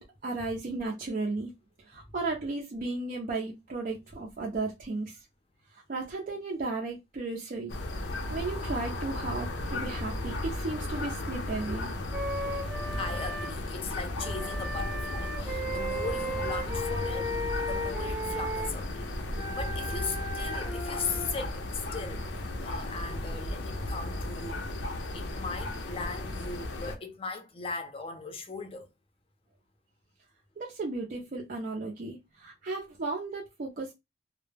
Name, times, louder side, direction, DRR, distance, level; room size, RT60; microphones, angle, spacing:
voice 1, 0.0-1.5 1.8-5.2 5.7-7.7 8.3-11.9 30.6-33.9, right 3 dB, 50° right, 0.5 m, -35 dB
sound 1, 7.7-27.0, left 1 dB, 85° left, 0.5 m, -35 dB
Wind instrument woodwind instrument, 12.1-13.5 14.2-18.7 19.3-21.3, equal, 10° right, 0.7 m, -35 dB
voice 2, 13.0-19.0 19.3-22.3 22.6-24.6 25.1-28.9, left 4 dB, 30° left, 0.5 m, -38 dB
2.2 x 2.0 x 3.2 m
head